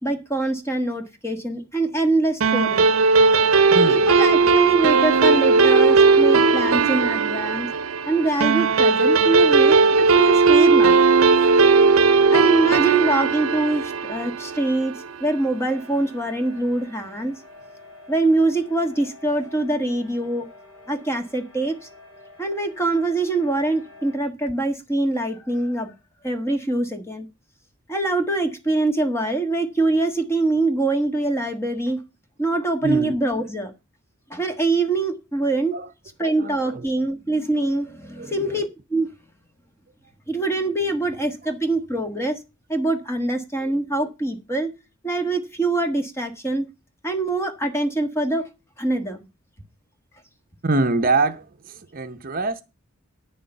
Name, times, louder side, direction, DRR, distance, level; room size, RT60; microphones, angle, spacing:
voice 1, 0.0-2.9 3.9-7.7 8.1-11.0 12.3-17.3 18.1-20.5 20.9-21.8 22.4-25.9 26.2-27.3 27.9-32.0 32.4-33.7 34.3-35.7 36.2-39.1 40.3-42.4 42.7-44.7 45.0-46.7 47.0-48.4 48.8-49.3, right 2 dB, 10° left, 1.5 m, -24 dB
sound 1, 2.4-15.2, right 4 dB, 75° right, 0.6 m, -17 dB
voice 2, 3.7-4.1 32.8-33.2 35.7-35.9 36.2-36.9 38.2-38.6 41.4-41.5 43.6-43.7 50.6-52.6, right 3 dB, 40° right, 0.7 m, -25 dB
sound 2, 15.6-24.2, left 2 dB, 70° left, 3.1 m, -47 dB
9.2 x 6.8 x 6.6 m
head